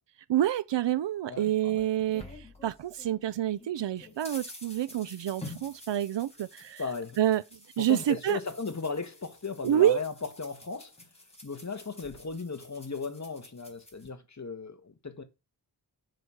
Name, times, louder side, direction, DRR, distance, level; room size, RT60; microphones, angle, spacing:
voice 1, 0.3-6.8 7.2-7.4 7.8-8.4 9.6-10.0, right 12 dB, 90° right, 0.6 m, -28 dB
voice 2, 1.3-1.9 6.8-7.2 7.8-10.9 11.4-15.2, left 4 dB, 40° left, 1.7 m, -36 dB
sound 1, 1.4-3.2 3.6-14.1, left 2 dB, 15° left, 4.3 m, -49 dB
7.5 x 6.1 x 6.4 m
wide cardioid pair, 95°, 42 cm